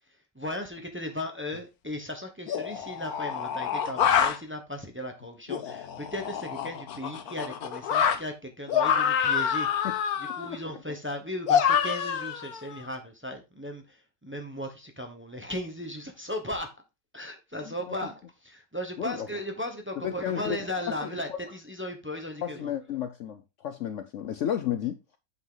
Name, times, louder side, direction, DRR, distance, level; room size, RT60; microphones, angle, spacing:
voice 1, 0.3-9.9 10.4-16.7 17.1-22.7, left 1 dB, 10° right, 0.8 m, -36 dB
sound 1, 1.5-1.6 2.5-4.4 5.5-8.2 8.7-10.5 11.5-12.8, left 8 dB, 60° left, 1.2 m, -27 dB
voice 2, 17.6-17.9 19.0-19.3 20.0-20.6 21.0-21.4 22.4-25.0, left 10 dB, 85° left, 0.6 m, -32 dB
7.8 x 5.7 x 3.9 m
omnidirectional pair, 1.9 m